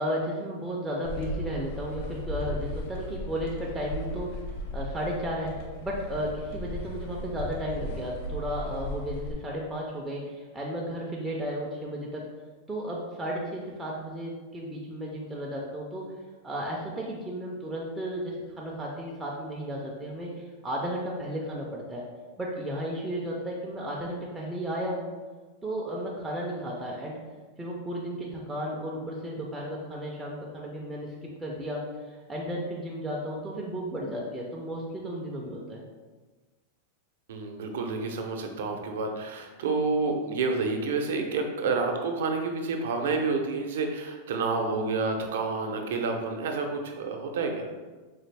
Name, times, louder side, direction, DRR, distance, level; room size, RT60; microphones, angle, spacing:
voice 1, 0.0-4.4 4.7-12.2 12.7-16.1 16.4-22.0 22.4-25.1 25.6-27.2 27.6-31.1 31.4-35.8, equal, 5° right, -4 dB, 0.3 m, -34 dB
sound 1, 1.0-9.3, left 1 dB, 60° left, 0.6 m, -36 dB
voice 2, 37.3-47.7, right 4 dB, 70° right, 4 dB, 0.5 m, -29 dB
4.0 x 2.4 x 3.3 m, 1.3 s
supercardioid pair, 175°, 0 cm